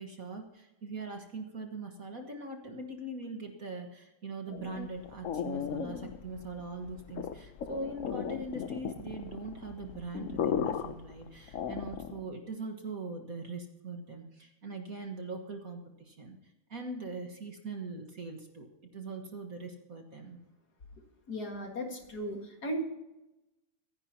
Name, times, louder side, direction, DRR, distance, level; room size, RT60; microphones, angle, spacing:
voice 1, 0.0-16.4 16.7-18.7 18.9-20.4, right 3 dB, 45° right, 3 dB, 1.9 m, -41 dB
sound 1, 4.5-12.3, left 8 dB, 65° left, 0.8 m, -36 dB
voice 2, 21.3-22.8, right 1 dB, 50° left, 2 dB, 2.4 m, -36 dB
25.0 x 10.5 x 2.9 m, 0.97 s
omnidirectional pair, 2.3 m